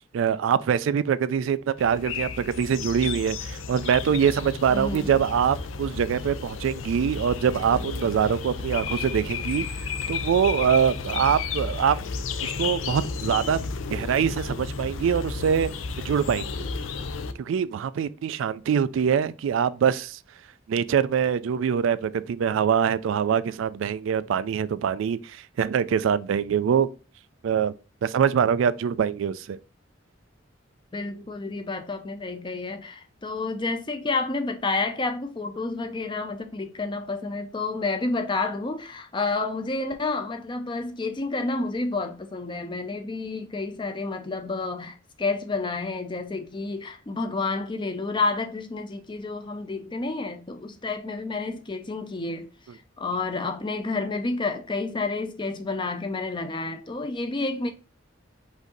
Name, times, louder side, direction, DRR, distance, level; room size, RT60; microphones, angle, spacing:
voice 1, 0.1-9.6 10.1-12.0 12.4-13.6 13.9-15.7 16.0-16.7 17.4-20.2 20.7-26.9 27.4-27.7 28.0-29.6, right 7 dB, 75° right, 0.3 m, -24 dB
sound 1, 1.8-17.3, left 5 dB, 80° left, 0.5 m, -32 dB
voice 2, 4.7-5.2 30.9-52.5 53.0-57.7, left 3 dB, 25° left, 0.5 m, -30 dB
5.0 x 2.7 x 3.8 m
head